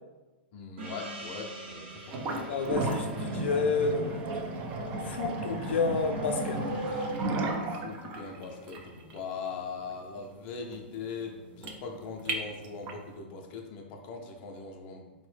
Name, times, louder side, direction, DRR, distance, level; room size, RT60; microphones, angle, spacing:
voice 1, 0.5-2.5 7.7-15.0, left 5 dB, 35° left, 1 dB, 0.5 m, -40 dB
Gong, 0.8-5.8, right 1 dB, 75° right, 0.8 m, -47 dB
sound 1, 2.1-13.1, right 2 dB, 25° right, 0.3 m, -35 dB
voice 2, 2.5-4.3 5.0-7.0, left 4 dB, 90° left, 4 dB, 0.3 m, -30 dB
sound 2, 4.4-7.7, right 2 dB, 45° right, 0.9 m, -40 dB
3.7 x 2.1 x 3.2 m, 1.2 s
supercardioid pair, 165°, 6 cm